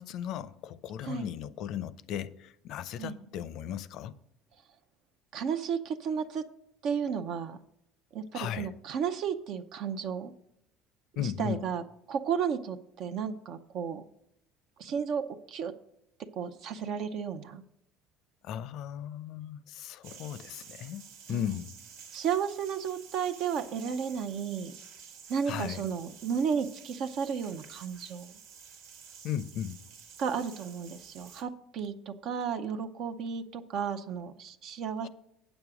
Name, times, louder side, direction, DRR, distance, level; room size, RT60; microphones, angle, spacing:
voice 1, 0.0-4.1 8.3-8.7 11.2-11.6 18.4-21.0 21.3-21.7 25.5-25.8 29.2-29.8 35.0-35.1, left 10 dB, 60° left, 0.6 m, -36 dB
voice 2, 5.3-6.5 6.8-7.6 8.1-10.3 11.1-14.0 14.8-15.7 16.3-17.6 21.3-21.4 22.1-24.7 25.3-28.3 30.2-35.1, right 7 dB, 60° right, 0.7 m, -33 dB
sound 1, 20.0-31.4, right 6 dB, 90° right, 1.6 m, -51 dB
8.9 x 7.2 x 4.9 m
cardioid pair, 125°, 0 cm